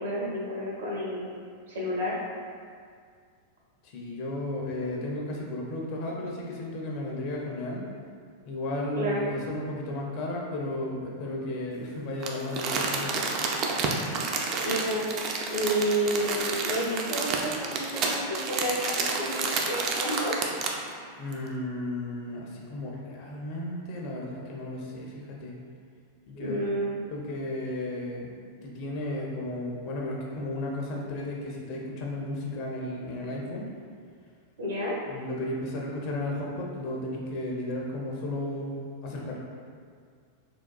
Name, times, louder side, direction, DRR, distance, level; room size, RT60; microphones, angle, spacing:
voice 1, 0.0-1.4 1.7-2.2 9.0-9.3 14.6-15.0 15.5-20.3 26.4-27.0 34.6-34.9, right 1 dB, 65° right, -5 dB, 0.8 m, -30 dB
voice 2, 3.8-7.8 8.5-13.3 21.2-25.5 26.3-26.7 27.1-28.3 28.6-33.6 35.1-39.4, left 1 dB, 45° left, -2 dB, 0.5 m, -34 dB
Crumpling crinkling, 12.2-20.9 21.3-21.4, right 4 dB, 35° right, 0.3 m, -30 dB
3.6 x 2.3 x 2.2 m, 2.1 s
figure-of-eight pair, 90°, 0 cm